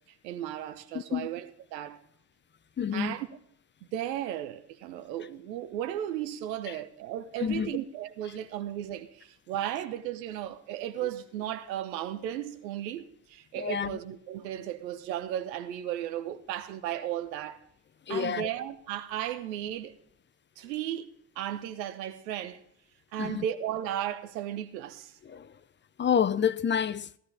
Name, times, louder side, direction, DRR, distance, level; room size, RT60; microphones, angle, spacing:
voice 1, 0.2-2.0 2.9-3.3 3.9-17.6 18.1-19.9 20.6-22.6 23.1-25.1, right 11 dB, 80° right, 1.0 m, -35 dB
voice 2, 0.9-1.3 2.8-3.2 6.7-6.8 7.4-7.8 11.0-11.1 13.5-14.0 18.1-18.5 23.2-23.4 25.2-25.6 26.0-27.1, left 8 dB, 25° left, 0.5 m, -29 dB
14.5 x 13.0 x 3.4 m
hypercardioid pair, 55°, 50 cm